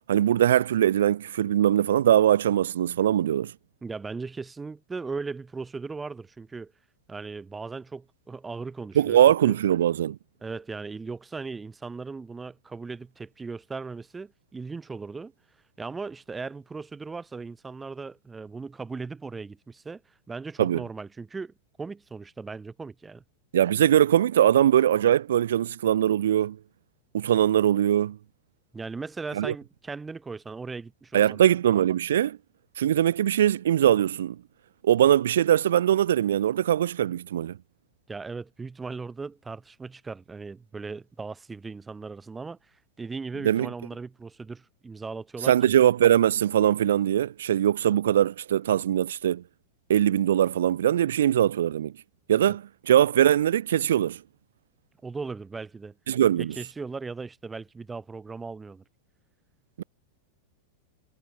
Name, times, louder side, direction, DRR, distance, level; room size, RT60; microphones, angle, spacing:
voice 1, 0.1-3.5 8.9-10.2 20.6-20.8 23.5-26.6 27.1-28.2 29.3-29.5 31.1-32.4 32.8-34.4 34.8-37.6 43.4-43.7 45.4-49.4 49.9-51.9 52.3-54.2 56.1-56.5 59.8-59.9, right 11 dB, 60° right, 1.0 m, -21 dB
voice 2, 3.8-6.7 7.1-9.2 9.4-9.6 10.4-15.3 15.8-20.0 20.3-23.2 28.7-31.4 38.1-42.6 43.0-45.7 52.5-52.6 55.0-55.9 56.4-58.8, right 4 dB, 15° right, 1.3 m, -38 dB
figure-of-eight pair, 90°, 0 cm